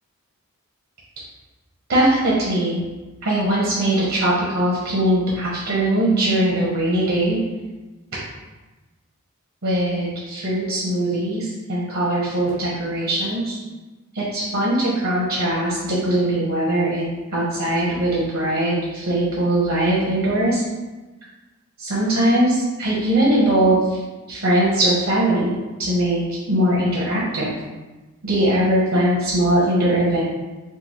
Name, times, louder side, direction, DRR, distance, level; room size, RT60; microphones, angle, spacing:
voice 1, 1.9-2.8 3.2-7.4 9.6-13.6 14.1-20.6 21.8-24.0 24.3-26.2 26.5-27.5 28.2-30.2, right 1 dB, 65° right, -7 dB, 0.8 m, -20 dB
3.6 x 2.3 x 2.9 m, 1.2 s
head